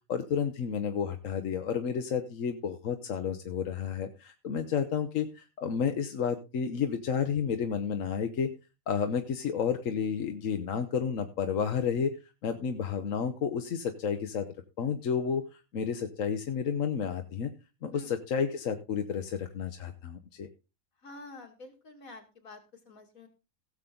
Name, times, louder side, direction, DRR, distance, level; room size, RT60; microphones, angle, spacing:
voice 1, 0.1-8.5 8.9-12.1 12.4-14.5 14.8-17.5 17.8-20.5, left 7 dB, 75° left, 6 dB, 1.2 m, -31 dB
voice 2, 21.0-23.3, left 2 dB, 90° left, 3 dB, 2.9 m, -48 dB
16.5 x 7.3 x 3.8 m, 0.30 s
omnidirectional pair, 1.4 m